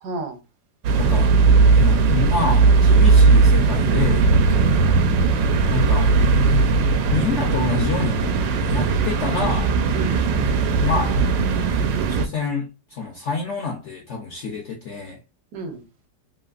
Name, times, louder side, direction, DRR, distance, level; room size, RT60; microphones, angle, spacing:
voice 1, 0.0-0.4 4.5-5.6 9.9-10.2 15.5-15.8, right 3 dB, 70° right, 1.3 m, -34 dB
sound 1, 0.8-12.3, right 4 dB, 90° right, 1.3 m, -17 dB
voice 2, 1.0-1.4 1.7-4.3 5.7-6.2 6.5-6.6 7.1-8.4 8.7-9.7 10.8-11.3 12.1-15.2, left 4 dB, 70° left, 0.6 m, -27 dB
3.2 x 2.9 x 2.3 m
omnidirectional pair, 1.9 m